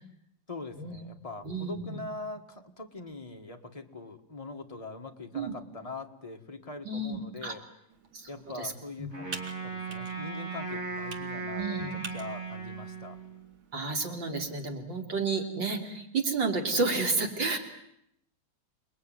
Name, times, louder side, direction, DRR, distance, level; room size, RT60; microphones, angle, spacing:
voice 1, 0.5-7.6 8.3-9.3 9.6-13.2, left 3 dB, 20° left, 3 dB, 1.8 m, -42 dB
voice 2, 1.4-2.0 5.3-5.5 6.8-7.5 8.1-8.3 8.6-8.7 9.0-9.1 11.5-11.9 13.7-17.6, right 3 dB, 70° right, 3 dB, 3.8 m, -31 dB
Computer keyboard, 7.9-14.7, right 4 dB, 90° right, 2.6 m, -48 dB
Wind instrument woodwind instrument, 9.1-13.5, right 4 dB, 35° right, 6.0 m, -37 dB
29.0 x 20.5 x 9.2 m, 0.77 s
omnidirectional pair, 2.1 m